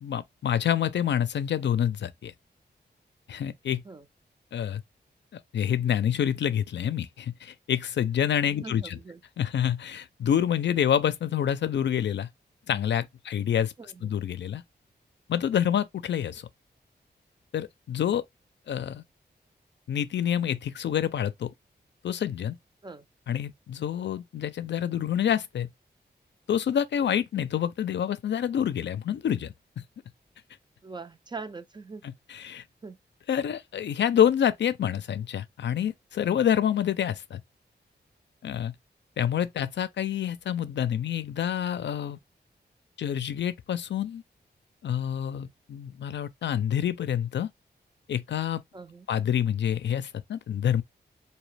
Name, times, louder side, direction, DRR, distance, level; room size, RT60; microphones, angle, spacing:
voice 1, 0.0-2.3 3.3-3.8 4.5-4.8 5.5-9.0 9.4-12.3 12.7-13.7 14.0-14.6 15.3-16.5 17.5-18.2 18.7-19.0 19.9-21.5 22.0-22.6 23.3-25.7 26.5-29.5 32.3-32.6 33.3-37.4 38.4-38.7 39.2-42.2 43.0-44.2 44.8-47.5 48.1-48.6 49.1-50.8, left 9 dB, 85° left, 0.4 m, -27 dB
voice 2, 8.5-9.2 13.8-14.1 22.8-23.1 30.8-32.0 32.8-33.0 48.7-49.1, right 4 dB, 25° right, 0.4 m, -42 dB
4.0 x 2.8 x 3.2 m
wide cardioid pair, 155°, 18 cm